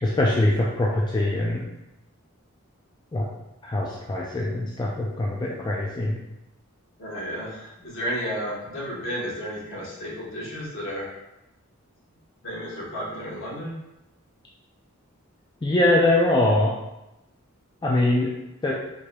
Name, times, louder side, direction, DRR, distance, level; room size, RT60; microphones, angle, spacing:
voice 1, 0.0-1.6 3.1-3.2 3.6-6.2 15.6-16.7 17.8-18.3 18.6-18.7, left 1 dB, 20° left, -3 dB, 0.3 m, -22 dB
voice 2, 7.0-11.1 12.4-13.7, equal, 60° left, -6 dB, 1.2 m, -32 dB
4.6 x 2.9 x 2.3 m, 0.91 s
head